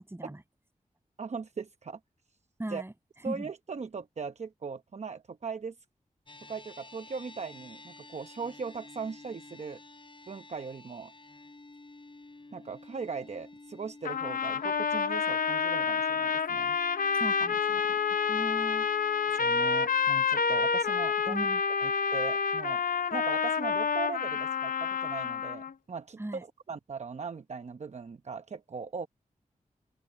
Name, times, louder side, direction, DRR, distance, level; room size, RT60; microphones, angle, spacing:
voice 1, 0.1-0.4 2.6-2.9 3.2-3.5 17.1-18.0 18.3-18.9 21.3-21.6 26.2-26.4, right 1 dB, 15° right, 7.7 m, -38 dB
voice 2, 1.2-2.0 2.7-2.8 3.2-5.7 6.5-9.8 10.3-11.1 12.5-16.8 19.3-21.5 21.8-22.8 23.1-26.2 26.7-29.1, right 5 dB, 55° right, 0.8 m, -39 dB
sound 1, 6.3-24.8, left 2 dB, 35° left, 4.5 m, -53 dB
sound 2, 14.0-25.7, left 6 dB, 85° left, 0.9 m, -28 dB
open air
wide cardioid pair, 80°, 14 cm